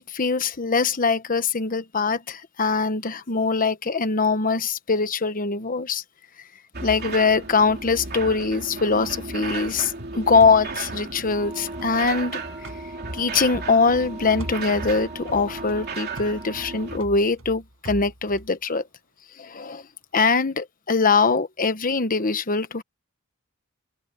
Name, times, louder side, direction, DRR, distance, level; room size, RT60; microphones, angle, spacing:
voice 1, 0.1-6.0 6.8-12.4 13.1-18.8 19.4-19.8 20.1-22.8, left 4 dB, 40° left, 1.1 m, -22 dB
sound 1, 6.7-17.0, right 3 dB, 50° right, 3.2 m, -34 dB
sound 2, 9.0-12.3 12.6-14.1 14.4-18.5, right 1 dB, 75° right, 6.3 m, -42 dB
Wind instrument woodwind instrument, 11.3-17.0, right 3 dB, 20° right, 4.8 m, -44 dB
head